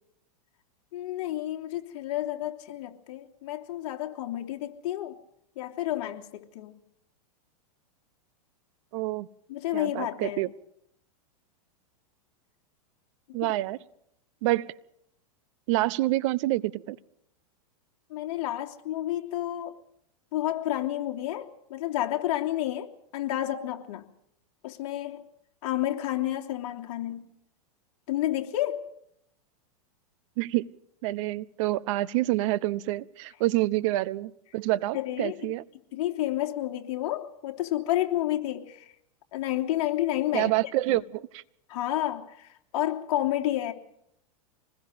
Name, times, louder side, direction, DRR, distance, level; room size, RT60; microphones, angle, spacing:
voice 1, 0.9-5.2 5.6-6.8 9.5-10.4 13.3-13.5 18.1-19.8 20.3-24.1 24.6-25.3 25.6-27.3 28.1-28.9 34.9-35.5 35.9-38.9 39.3-40.5 40.9-41.0 41.7-43.7, left 14 dB, 60° left, 2 dB, 3.0 m, -30 dB
voice 2, 8.9-9.3 9.7-10.5 13.3-13.8 14.4-14.7 15.7-17.0 30.4-30.7 31.0-35.6 40.3-41.4, right 17 dB, 55° right, 19 dB, 1.0 m, -27 dB
26.0 x 20.5 x 5.2 m, 0.74 s
hypercardioid pair, 125°, 19 cm